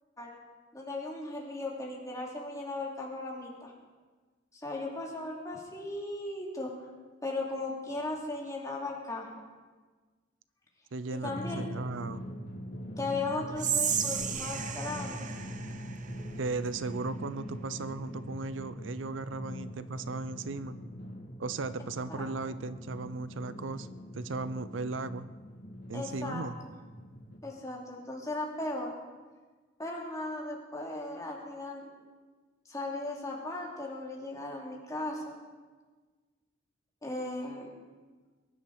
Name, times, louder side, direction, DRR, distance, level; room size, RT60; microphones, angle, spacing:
voice 1, 0.7-3.7 4.5-6.7 7.2-9.3 11.1-11.7 13.0-15.3 22.2-22.3 25.9-26.7 27.4-28.9 29.8-31.9 32.7-35.4 37.0-37.7, left 2 dB, 15° left, -2 dB, 2.9 m, -37 dB
voice 2, 10.9-12.2 16.4-20.8 21.4-23.9 24.1-25.3 25.9-26.6, right 3 dB, 75° right, 14 dB, 0.6 m, -36 dB
Drum, 11.2-27.4, equal, 60° left, 2.3 m, -42 dB
Whispering, 13.5-16.8, right 8 dB, 40° right, 1.0 m, -34 dB
23.0 x 11.0 x 4.8 m, 1.4 s
head